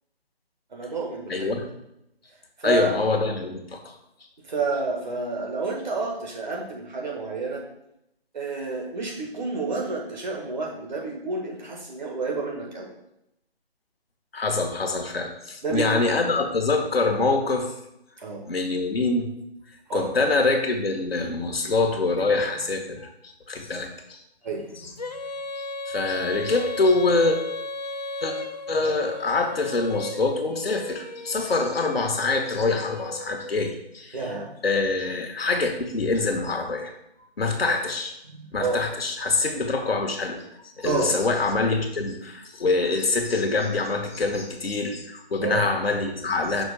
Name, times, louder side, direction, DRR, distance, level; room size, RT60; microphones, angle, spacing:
voice 1, 0.7-1.6 2.6-2.9 4.5-7.6 8.3-12.9 15.6-16.0 18.2-18.4 19.9-20.1 24.4-24.9 34.1-34.5 37.7-37.8 38.3-38.8 40.8-41.1 45.4-45.7, right 3 dB, 45° right, -1 dB, 1.7 m, -29 dB
voice 2, 1.3-1.7 2.6-3.9 14.3-17.7 18.5-19.3 19.9-24.2 25.9-27.4 28.2-28.3 28.7-34.2 34.6-36.9 37.4-38.1 38.5-40.4 40.8-46.6, left 3 dB, 70° left, 4 dB, 1.2 m, -25 dB
Female singing, 25.0-33.8, left 2 dB, 45° left, 0.4 m, -35 dB
6.0 x 3.1 x 5.5 m, 0.82 s
figure-of-eight pair, 160°, 31 cm